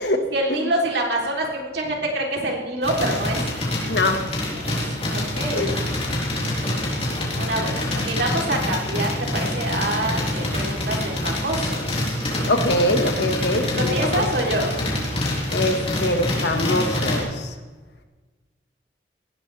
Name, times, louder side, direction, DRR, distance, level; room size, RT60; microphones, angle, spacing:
voice 1, 0.0-3.4 4.6-5.9 7.4-7.7 8.0-12.5 13.8-14.8, right 1 dB, 70° right, -1 dB, 3.5 m, -26 dB
sound 1, 2.8-17.2, left 1 dB, 35° left, 3.9 m, -26 dB
voice 2, 3.9-4.2 5.6-5.7 6.6-6.7 12.5-14.2 15.5-17.5, left 1 dB, 75° left, 5 dB, 1.7 m, -23 dB
19.0 x 16.5 x 3.5 m, 1.3 s
head